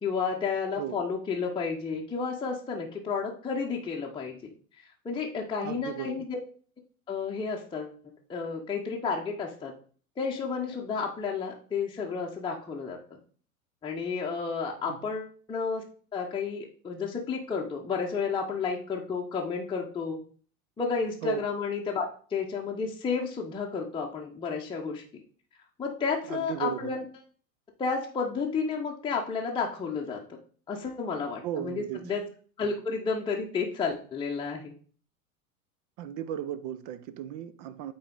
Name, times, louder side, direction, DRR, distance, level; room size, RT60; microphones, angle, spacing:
voice 1, 0.0-4.5 5.0-6.4 7.1-7.9 8.3-9.7 10.2-13.2 13.8-15.8 16.1-20.2 20.8-25.0 25.8-27.0 27.8-30.2 30.7-32.2 32.6-34.7, left 5 dB, 10° left, 0.9 m, -31 dB
voice 2, 5.6-6.2 14.9-15.0 21.2-21.4 26.3-26.9 31.4-32.0 36.0-37.9, right 10 dB, 30° right, 0.4 m, -35 dB
8.9 x 4.2 x 3.8 m
figure-of-eight pair, 85°, 43 cm